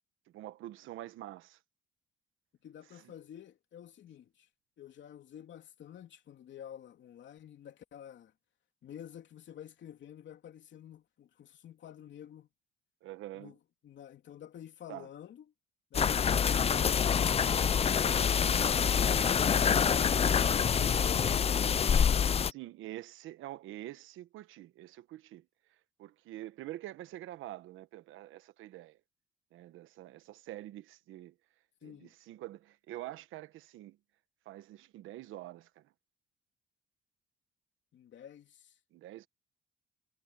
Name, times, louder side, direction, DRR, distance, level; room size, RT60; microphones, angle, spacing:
voice 1, 0.3-1.6 3.0-3.1 13.0-13.5 14.9-15.1 16.0-16.2 20.2-20.5 22.4-25.5 26.0-29.0 29.5-31.3 31.8-34.0 34.5-35.9 38.9-39.3, right 15 dB, 90° right, 1.1 m, -46 dB
voice 2, 2.6-4.5 4.8-8.3 8.8-12.5 13.3-13.6 13.8-15.4 15.9-17.5 31.8-32.1 37.9-38.7, left 10 dB, 70° left, 3.1 m, -50 dB
sound 1, 15.9-22.5, left 7 dB, 30° left, 0.4 m, -26 dB
cardioid pair, 90°, 20 cm